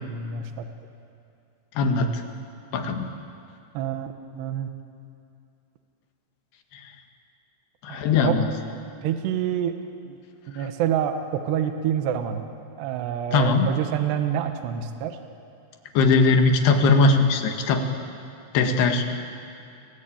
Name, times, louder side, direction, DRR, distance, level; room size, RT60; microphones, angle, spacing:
voice 1, 0.0-0.7 3.7-4.7 7.9-8.4 9.0-9.8 10.1-10.2 10.5-12.5 12.8-15.2, right 9 dB, 70° right, 7 dB, 3.2 m, -27 dB
voice 2, 1.8-2.1 2.7-3.1 7.8-8.5 13.3-13.7 16.0-17.8 18.5-19.0, left 3 dB, 65° left, 4 dB, 3.6 m, -20 dB
29.5 x 21.5 x 8.9 m, 2.5 s
omnidirectional pair, 5.6 m